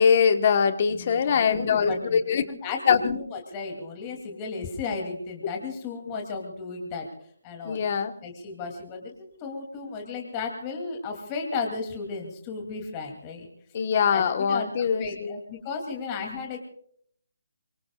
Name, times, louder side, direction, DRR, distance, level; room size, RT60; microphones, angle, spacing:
voice 1, 0.0-2.4 2.9-3.2 6.1-6.2 7.6-8.1 13.7-15.4, left 6 dB, 35° left, 9 dB, 1.3 m, -22 dB
voice 2, 0.9-7.1 7.4-7.8 8.2-13.5 14.1-16.6, left 4 dB, 20° left, 2 dB, 2.7 m, -34 dB
25.0 x 24.5 x 2.4 m, 0.63 s
hypercardioid pair, 165°, 0 cm